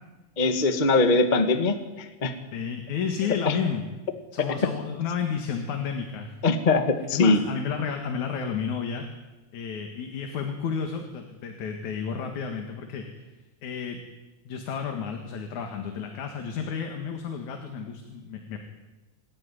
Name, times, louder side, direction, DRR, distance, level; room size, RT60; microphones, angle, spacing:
voice 1, 0.4-2.3 3.4-3.5 6.4-7.4, left 3 dB, 25° left, 7 dB, 0.9 m, -22 dB
voice 2, 2.5-3.8 4.3-6.4 7.1-9.1 9.5-13.0 13.6-14.0 14.4-18.6, left 6 dB, 65° left, 4 dB, 3.2 m, -31 dB
27.0 x 13.0 x 10.0 m, 1.2 s
omnidirectional pair, 3.7 m